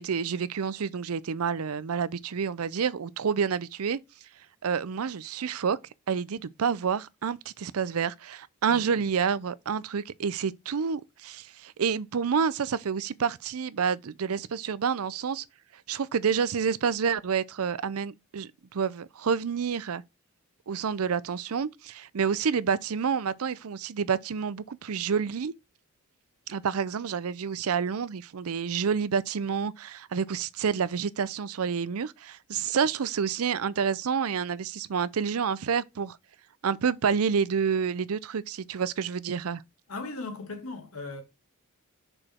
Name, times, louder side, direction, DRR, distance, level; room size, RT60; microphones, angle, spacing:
voice 1, 0.0-4.0 4.6-5.8 6.1-15.4 15.9-20.0 20.7-25.5 26.5-36.2 36.6-39.6, right 6 dB, 75° right, 0.5 m, -28 dB
voice 2, 39.9-41.2, left 3 dB, 75° left, 2.0 m, -37 dB
6.3 x 4.9 x 4.4 m
head